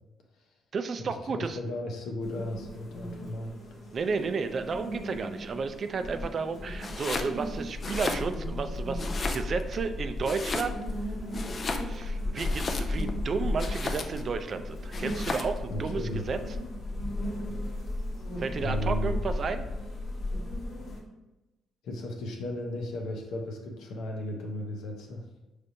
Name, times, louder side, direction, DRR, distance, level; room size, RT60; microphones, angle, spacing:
voice 1, 0.7-1.6 3.9-10.8 11.9-16.4 18.4-19.6, right 5 dB, 50° right, 9 dB, 0.3 m, -32 dB
voice 2, 1.3-3.5 15.7-16.3 18.6-19.1 21.8-25.2, left 1 dB, 80° left, 1 dB, 0.8 m, -35 dB
sound 1, 2.2-21.0, left 1 dB, 65° left, 1.1 m, -35 dB
Domestic sounds home sounds, 6.8-7.3 7.7-8.6 9.0-9.8 10.2-11.0 11.3-13.1 13.6-14.3 14.9-15.6, left 3 dB, 40° left, 0.4 m, -35 dB
5.2 x 3.3 x 2.6 m, 1.0 s
cardioid pair, 90°, 0 cm